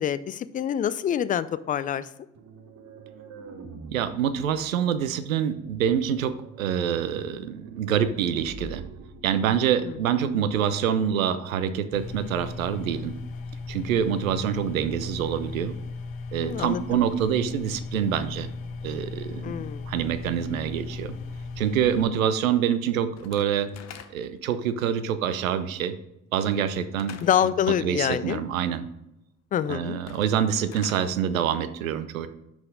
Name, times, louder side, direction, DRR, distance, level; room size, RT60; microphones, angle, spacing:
voice 1, 0.0-2.1 9.8-10.0 16.4-17.0 19.4-19.9 27.2-28.4 29.5-30.0, left 9 dB, 20° left, 16 dB, 0.3 m, -26 dB
sound 1, 2.3-11.1, right 4 dB, 40° right, 1.1 m, -46 dB
voice 2, 3.9-8.8 9.2-13.1 13.7-15.7 16.3-18.5 18.8-19.5 19.9-21.1 21.6-23.7 24.1-25.9 26.3-27.2 27.8-28.8 29.7-32.3, right 9 dB, 75° right, 11 dB, 0.6 m, -26 dB
sound 2, 11.9-22.0, left 3 dB, 75° left, 0.7 m, -36 dB
Slam / Wood, 23.2-24.5 27.0-27.5 29.9-31.1, left 8 dB, 40° left, 0.7 m, -44 dB
6.2 x 5.8 x 5.1 m, 0.87 s
figure-of-eight pair, 50°, 41 cm